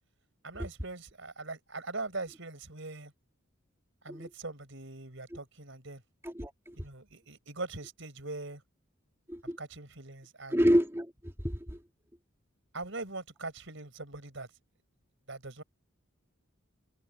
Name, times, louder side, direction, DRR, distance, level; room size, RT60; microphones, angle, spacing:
voice 1, 0.4-3.1 4.0-6.0 6.8-8.6 9.6-10.6 12.7-14.5 15.3-15.6, right 3 dB, 65° right, 5.6 m, -41 dB
voice 2, 6.2-6.7 9.3-9.6 10.5-11.8, equal, 15° right, 2.6 m, -28 dB
head